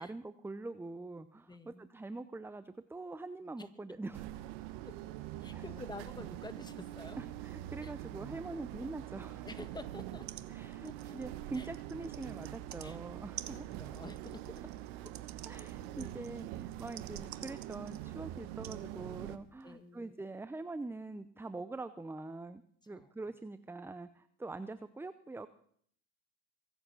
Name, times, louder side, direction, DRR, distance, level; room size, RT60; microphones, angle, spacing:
voice 1, 0.0-4.3 5.5-5.6 7.2-9.5 10.5-13.7 15.4-25.5, right 2 dB, 5° right, 13 dB, 0.6 m, -44 dB
voice 2, 1.5-1.9 3.6-4.0 4.8-5.0 5.4-7.2 7.8-7.9 9.4-10.3 10.8-11.2 11.5-11.7 12.8-13.0 13.5-14.6 15.0-15.1 15.5-15.7 16.0-16.1 19.6-20.2 22.9-23.1, left 2 dB, 10° left, 8 dB, 1.9 m, -49 dB
sound 1, 4.1-19.4, right 13 dB, 80° right, 1.2 m, -44 dB
sound 2, 10.0-10.1 10.3-10.5 10.7-12.9 13.4-18.1 18.6-18.8 19.6-19.7, right 12 dB, 50° right, 1.3 m, -50 dB
23.0 x 8.2 x 6.1 m, 0.62 s
supercardioid pair, 85°, 37 cm